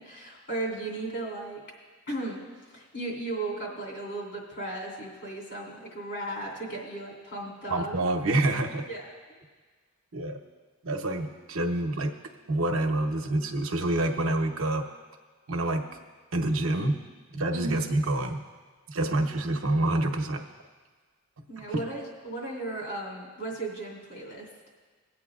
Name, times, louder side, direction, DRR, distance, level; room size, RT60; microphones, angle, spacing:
voice 1, 0.0-1.6 2.1-2.5 2.7-7.9 8.9-9.4 17.5-17.9 21.5-24.5, right 2 dB, 55° left, -2 dB, 2.8 m, -36 dB
voice 2, 7.7-8.8 10.1-10.4 10.8-12.1 12.5-14.8 15.5-15.8 16.3-17.0 17.3-18.4 18.9-20.4 21.6-21.7, right 1 dB, 65° right, 3 dB, 0.8 m, -27 dB
21.5 x 8.5 x 2.4 m, 1.4 s
head